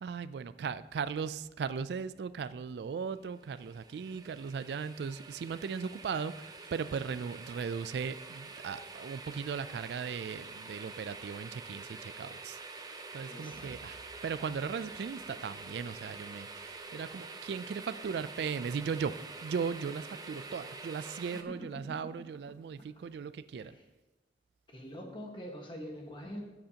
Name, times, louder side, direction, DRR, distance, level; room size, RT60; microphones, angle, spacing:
voice 1, 0.0-19.2 19.4-23.8, right 6 dB, 65° right, 14 dB, 0.3 m, -38 dB
sound 1, 3.3-21.4, right 3 dB, 20° right, 0.6 m, -47 dB
voice 2, 13.3-13.7 23.5-23.8 24.7-26.4, equal, 30° left, 1 dB, 1.4 m, -44 dB
13.5 x 8.0 x 2.8 m, 1.1 s
head